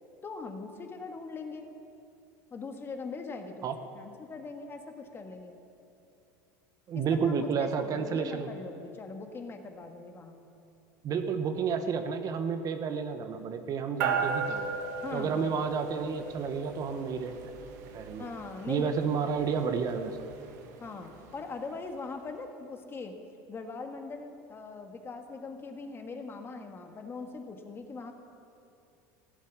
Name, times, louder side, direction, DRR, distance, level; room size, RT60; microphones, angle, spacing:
voice 1, 0.2-1.7 2.5-5.5 6.9-10.4 15.0-15.7 18.2-19.1 20.8-23.1 23.5-28.1, left 4 dB, 25° left, 5 dB, 1.5 m, -41 dB
voice 2, 6.9-8.5 11.0-14.7 15.1-17.3 17.9-18.2 18.7-20.2, right 6 dB, 40° right, 8 dB, 1.0 m, -30 dB
sound 1, 14.0-21.7, right 5 dB, 80° right, 1.5 m, -37 dB
16.0 x 7.5 x 9.2 m, 2.7 s
supercardioid pair, 115°, 9 cm